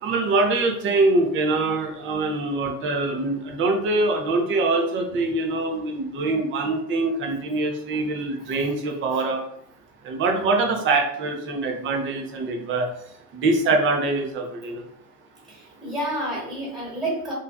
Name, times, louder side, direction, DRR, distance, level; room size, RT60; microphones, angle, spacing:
voice 1, 0.0-9.4 10.0-12.9 13.3-14.8, right 3 dB, 25° right, 3 dB, 0.5 m, -24 dB
voice 2, 15.5-17.3, right 1 dB, ahead, -5 dB, 1.0 m, -29 dB
2.5 x 2.4 x 2.2 m, 0.72 s
hypercardioid pair, 85°, 48 cm